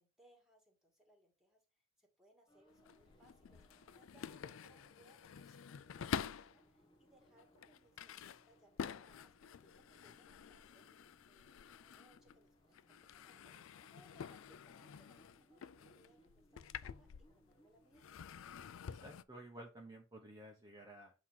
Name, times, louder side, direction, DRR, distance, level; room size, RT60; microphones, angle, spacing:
voice 1, 0.0-17.1 17.3-18.1, right 1 dB, ahead, 1 dB, 2.0 m, -70 dB
sound 1, 2.5-18.4, right 1 dB, 25° left, 1.0 m, -70 dB
sound 2, 2.7-6.6 7.2-12.5 12.7-17.6 17.9-19.2, left 7 dB, 80° left, 0.4 m, -48 dB
voice 2, 18.9-21.1, right 1 dB, 20° right, 0 dB, 0.9 m, -53 dB
8.1 x 2.9 x 5.7 m, 0.33 s
head